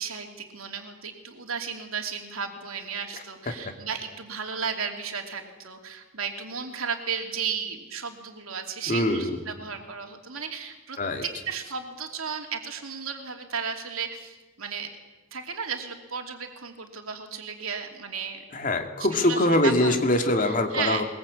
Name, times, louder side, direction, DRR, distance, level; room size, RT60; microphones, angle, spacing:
voice 1, 0.0-14.9 15.3-18.4 19.1-20.0 20.4-21.0, right 6 dB, 90° right, 3 dB, 2.9 m, -34 dB
voice 2, 8.9-9.4 11.0-11.2 18.5-21.0, left 1 dB, 40° left, 5 dB, 2.4 m, -23 dB
22.0 x 21.5 x 8.6 m, 1.2 s
head